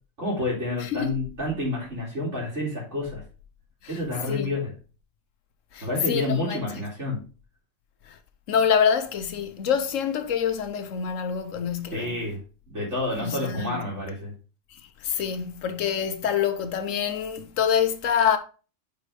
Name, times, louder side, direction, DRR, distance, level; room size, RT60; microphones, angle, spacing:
voice 1, 0.2-3.2 3.9-4.7 5.8-7.2 11.9-12.4 12.7-14.3, left 2 dB, 70° right, 3.0 m, -29 dB
voice 2, 0.8-1.2 3.8-4.0 4.3-4.6 5.7-6.8 8.1-8.2 8.5-12.3 13.2-13.9 15.0-18.4, left 7 dB, 85° left, 1.2 m, -26 dB
5.3 x 4.8 x 4.8 m
omnidirectional pair, 1.3 m